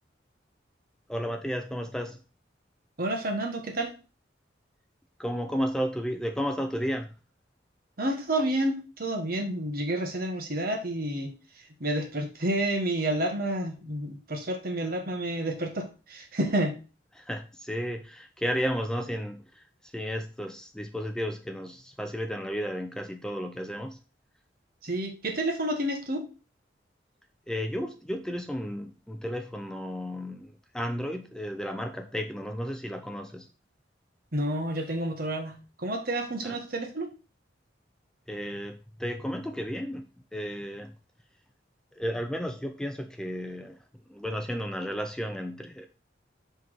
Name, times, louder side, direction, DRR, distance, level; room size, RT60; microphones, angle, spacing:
voice 1, 1.1-2.2 5.2-7.1 17.2-24.0 27.5-33.5 36.4-36.6 38.3-40.1 40.3-40.9 41.9-43.8 44.1-45.9, equal, 5° left, 0.4 m, -33 dB
voice 2, 3.0-3.9 8.0-11.3 11.8-16.7 24.8-26.3 34.3-37.1, right 1 dB, 55° right, 1.2 m, -30 dB
5.9 x 3.5 x 4.6 m
head